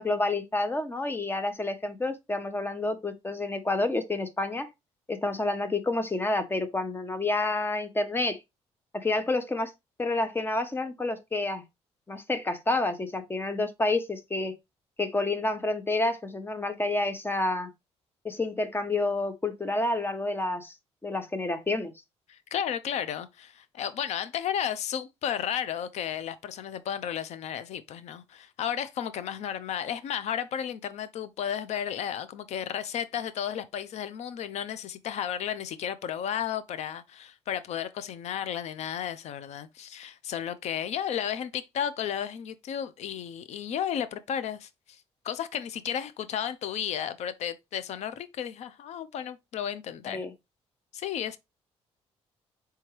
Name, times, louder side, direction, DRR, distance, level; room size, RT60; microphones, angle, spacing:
voice 1, 0.0-4.7 5.1-8.4 8.9-9.7 10.0-11.6 12.1-14.5 15.0-17.7 18.2-20.7 21.0-21.9 50.1-50.3, left 2 dB, 20° left, 0.9 m, -29 dB
voice 2, 22.3-44.7 45.2-50.2 50.9-51.4, left 9 dB, 70° left, 0.5 m, -33 dB
4.5 x 3.4 x 3.2 m
cardioid pair, 95°, 12 cm